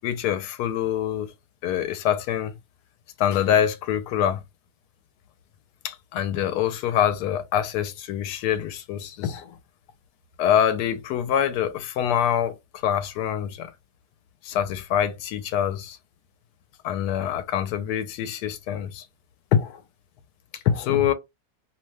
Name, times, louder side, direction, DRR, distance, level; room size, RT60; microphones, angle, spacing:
voice 1, 0.0-1.3 1.6-2.6 3.2-4.4 5.8-9.6 10.4-13.7 14.4-16.0 16.8-19.1 19.5-19.8 20.5-21.1, left 9 dB, 75° left, 1.1 m, -25 dB
2.9 x 2.2 x 3.2 m
omnidirectional pair, 1.8 m